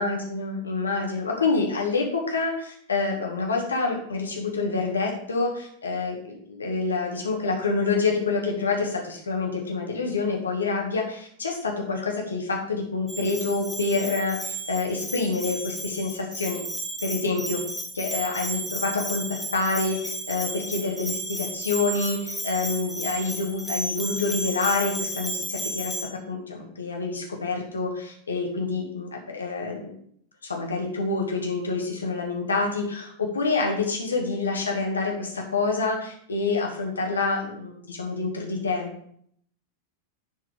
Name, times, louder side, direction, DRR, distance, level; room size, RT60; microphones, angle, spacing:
voice 1, 0.0-16.6 17.0-17.6 17.9-19.2 19.5-26.0 26.3-29.9 30.4-38.9, left 3 dB, 75° left, 1 dB, 1.8 m, -27 dB
Bell, 13.1-26.0, right 1 dB, ahead, 1.6 m, -33 dB
10.0 x 4.6 x 4.8 m, 0.66 s
figure-of-eight pair, 90°, 0 cm